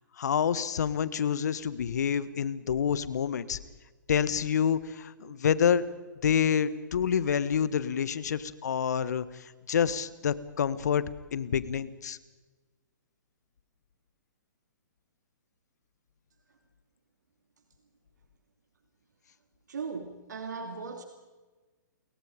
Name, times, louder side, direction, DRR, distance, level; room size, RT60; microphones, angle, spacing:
voice 1, 0.2-3.6 4.1-5.8 6.2-11.0 11.3-12.2, left 8 dB, 60° left, 16 dB, 1.4 m, -28 dB
voice 2, 19.7-21.0, right 5 dB, 65° right, 5 dB, 2.6 m, -37 dB
29.5 x 22.5 x 5.2 m, 1.3 s
figure-of-eight pair, 120°, 10 cm